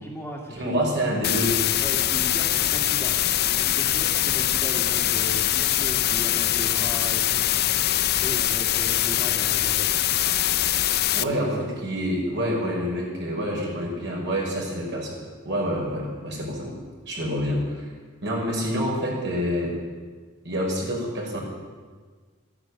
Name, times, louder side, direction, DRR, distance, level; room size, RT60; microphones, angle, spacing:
voice 1, 0.0-1.0 1.8-3.2 3.5-7.5 8.2-10.1 11.2-11.6, equal, 5° left, -5 dB, 2.1 m, -37 dB
voice 2, 0.5-1.6 11.1-15.2 15.4-16.7 17.1-17.9 18.2-19.7 20.4-21.4, equal, 55° right, -2 dB, 5.4 m, -27 dB
sound 1, 1.2-11.2, left 13 dB, 50° left, 0.6 m, -23 dB
14.5 x 10.5 x 9.6 m, 1.5 s
head